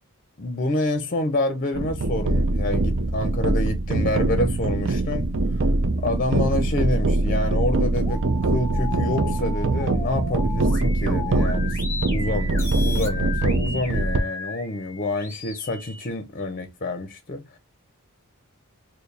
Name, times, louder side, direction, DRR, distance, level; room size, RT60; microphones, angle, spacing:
voice 1, 0.4-5.3 5.5-5.7 6.0-11.8 12.1-17.4, left 2 dB, 40° left, 0.6 m, -28 dB
sound 1, 1.7-14.2, right 2 dB, 55° right, 0.5 m, -23 dB
sound 2, 7.7-16.1, left 4 dB, 10° left, 1.0 m, -36 dB
4.6 x 2.1 x 3.2 m
head